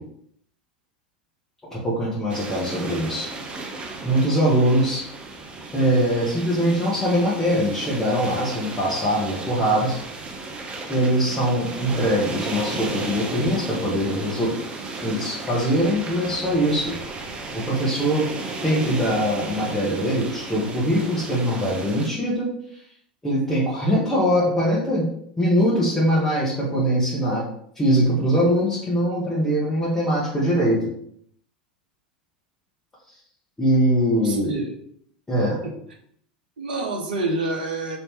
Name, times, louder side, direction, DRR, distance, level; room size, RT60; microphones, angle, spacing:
voice 1, 1.7-3.3 4.0-5.0 5.7-10.0 10.9-14.5 15.0-17.0 17.5-18.2 18.6-22.5 23.2-25.0 25.4-27.4 27.7-30.8 33.6-34.5 35.3-35.6, equal, 10° left, -8 dB, 1.1 m, -22 dB
sound 1, 2.3-22.1, right 3 dB, 25° right, 0.7 m, -34 dB
voice 2, 34.1-34.7 35.6-35.7 36.6-38.0, right 2 dB, 70° right, 2 dB, 0.8 m, -27 dB
3.0 x 2.7 x 3.6 m, 0.69 s
figure-of-eight pair, 85°, 5 cm